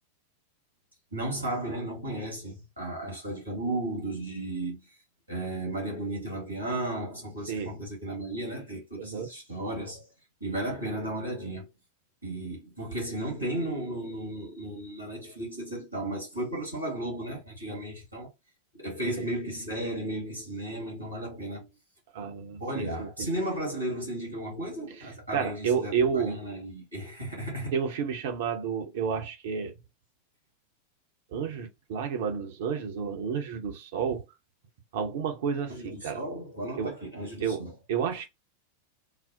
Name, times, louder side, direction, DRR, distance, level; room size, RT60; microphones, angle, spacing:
voice 1, 1.1-4.8 5.3-10.1 10.4-11.7 12.2-18.3 18.7-21.7 22.6-27.7 35.7-37.7, right 1 dB, 85° right, 2.1 m, -34 dB
voice 2, 9.0-9.3 19.0-19.2 22.1-23.3 25.3-26.4 27.7-29.7 31.3-34.2 34.9-36.2 36.8-36.9 37.4-38.3, right 7 dB, 55° right, 0.8 m, -31 dB
4.0 x 2.0 x 2.6 m
figure-of-eight pair, 90°, 0 cm